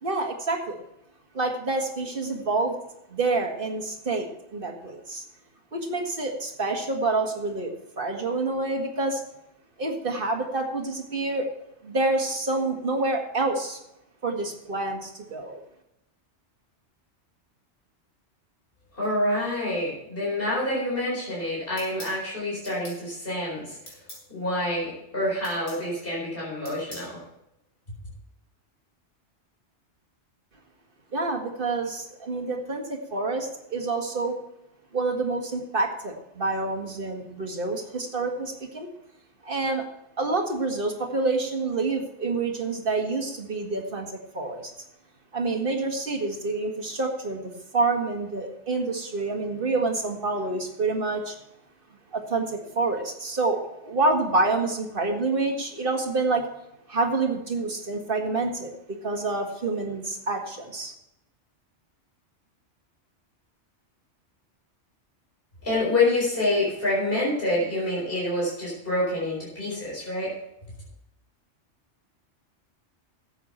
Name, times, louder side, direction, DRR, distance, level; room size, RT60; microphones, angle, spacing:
voice 1, 0.0-0.8 1.3-2.7 3.1-5.2 5.7-9.2 9.8-13.8 14.2-15.6 31.1-34.4 34.9-38.9 39.4-39.9 40.2-44.1 44.3-44.7 45.3-51.4 52.1-56.4 56.9-58.7 59.0-60.9, right 3 dB, 50° right, 2 dB, 2.1 m, -27 dB
voice 2, 18.9-23.8 24.3-27.2 65.6-70.3, left 1 dB, 50° left, -5 dB, 4.6 m, -27 dB
sound 1, 21.8-22.2 22.6-23.0 23.9-24.2 25.4-25.8 26.6-27.1, left 1 dB, 70° left, 5.4 m, -43 dB
13.0 x 8.7 x 4.4 m, 0.85 s
omnidirectional pair, 1.2 m